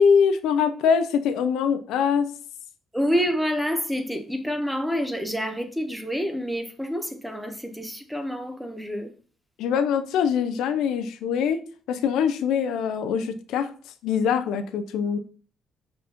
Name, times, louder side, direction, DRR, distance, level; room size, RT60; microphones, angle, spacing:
voice 1, 0.0-2.3 9.6-13.7 14.0-15.2, left 7 dB, 85° left, 0.7 m, -23 dB
voice 2, 2.9-9.1, equal, ahead, 1.3 m, -28 dB
5.5 x 4.1 x 5.2 m
cardioid pair, 90°, 0 cm